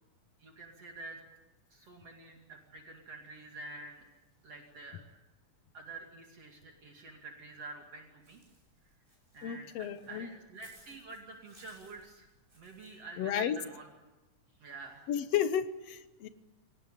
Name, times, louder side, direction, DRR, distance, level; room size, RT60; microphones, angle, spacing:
voice 1, 0.4-1.2 1.7-4.1 4.4-5.0 5.7-8.4 9.3-12.3 12.6-13.9 14.6-15.0, right 3 dB, 55° right, 1 dB, 3.4 m, -48 dB
Walk footsteps / Bird, 8.2-13.0, right 1 dB, 15° right, 7.6 m, -62 dB
voice 2, 9.4-10.3 13.2-13.6 15.1-16.3, left 9 dB, 65° left, 12 dB, 1.9 m, -32 dB
24.5 x 18.5 x 8.9 m, 1.1 s
omnidirectional pair, 3.6 m